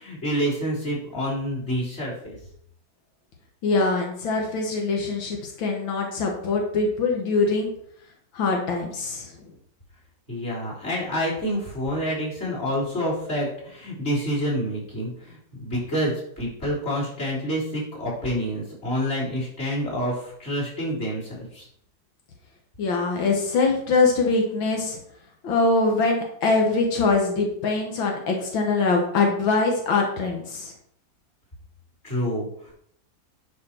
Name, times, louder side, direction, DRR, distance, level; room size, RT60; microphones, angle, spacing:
voice 1, 0.0-2.4 10.3-21.7 32.0-32.7, equal, 35° left, -6 dB, 4.0 m, -28 dB
voice 2, 3.6-7.7 8.3-9.3 22.8-25.0 25.4-30.7, left 3 dB, 85° left, 1 dB, 2.1 m, -23 dB
11.0 x 5.2 x 4.5 m, 0.68 s
omnidirectional pair, 2.1 m